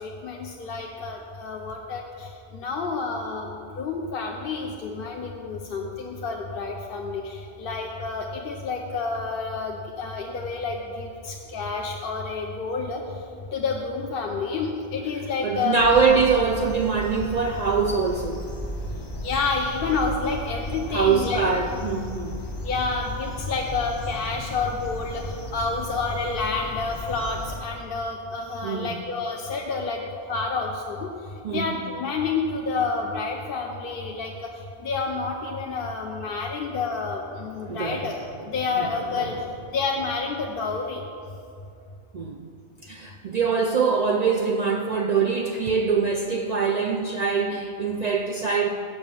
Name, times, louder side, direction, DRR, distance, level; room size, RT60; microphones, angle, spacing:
voice 1, 0.0-3.5 3.8-13.0 13.5-16.0 19.2-21.4 22.6-30.0 30.3-31.1 31.5-34.5 34.8-39.3 39.7-41.0, left 4 dB, 60° left, 1 dB, 0.8 m, -29 dB
voice 2, 15.4-18.5 20.9-22.4 28.6-29.0 31.4-31.8 37.6-38.5 38.7-39.4 42.1-42.5 42.8-48.7, right 5 dB, 60° right, 3 dB, 0.4 m, -24 dB
sound 1, 15.8-27.6, equal, 35° left, 0.4 m, -35 dB
7.7 x 5.5 x 7.3 m, 2.5 s
omnidirectional pair, 1.2 m